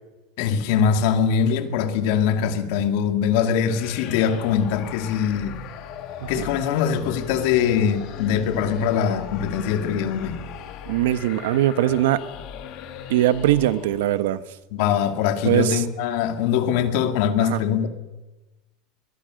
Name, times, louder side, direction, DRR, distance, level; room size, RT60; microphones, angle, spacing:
voice 1, 0.4-5.6 6.3-10.5 14.7-17.9, left 8 dB, 65° left, 7 dB, 2.5 m, -22 dB
sound 1, 3.6-14.2, left 7 dB, 50° left, 2.9 m, -38 dB
voice 2, 10.9-12.2 13.1-14.4 15.4-15.8 17.4-17.6, right 13 dB, 90° right, 13 dB, 1.2 m, -21 dB
23.5 x 21.5 x 6.5 m, 1.1 s
supercardioid pair, 155°, 0 cm